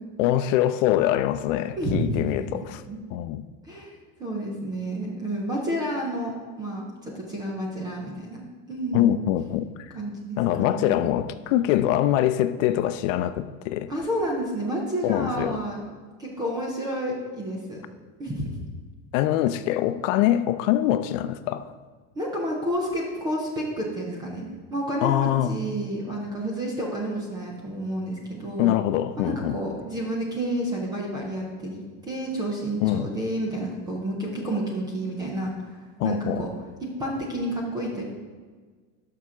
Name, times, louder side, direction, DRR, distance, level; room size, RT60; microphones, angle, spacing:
voice 1, 0.2-2.8 3.1-3.4 8.9-9.9 10.4-13.9 15.0-15.6 19.1-21.7 25.0-25.6 28.6-29.6 32.8-33.1 36.0-36.4, left 12 dB, 65° left, 0.5 m, -24 dB
voice 2, 1.8-2.2 2.9-3.0 3.7-8.4 8.7-9.1 9.9-11.0 13.9-15.9 16.2-17.8 18.2-18.4 22.2-28.8 29.2-35.8 36.0-36.5 37.0-38.0, right 1 dB, 10° right, 0.3 m, -30 dB
12.0 x 5.8 x 3.6 m
supercardioid pair, 175°, 42 cm